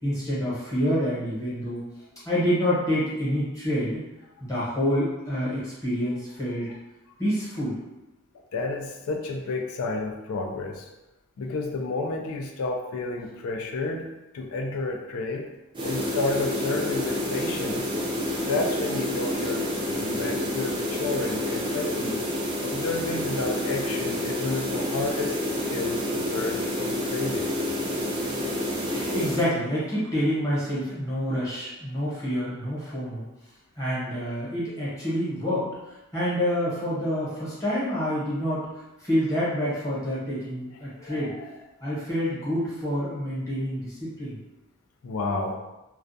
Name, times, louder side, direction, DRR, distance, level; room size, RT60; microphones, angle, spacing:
voice 1, 0.0-1.8 2.2-4.0 4.4-6.7 7.2-7.8 28.8-33.2 33.8-38.6 39.0-41.3 41.8-44.4, equal, 15° left, -9 dB, 0.9 m, -27 dB
voice 2, 8.5-10.9 11.4-14.1 14.3-15.5 15.8-17.9 18.4-22.2 22.6-25.4 25.7-27.4 41.0-41.5 45.0-45.6, left 3 dB, 75° left, 2 dB, 0.4 m, -31 dB
sound 1, 15.7-29.5, left 1 dB, 20° right, 0.4 m, -29 dB
2.3 x 2.2 x 2.6 m, 0.99 s
head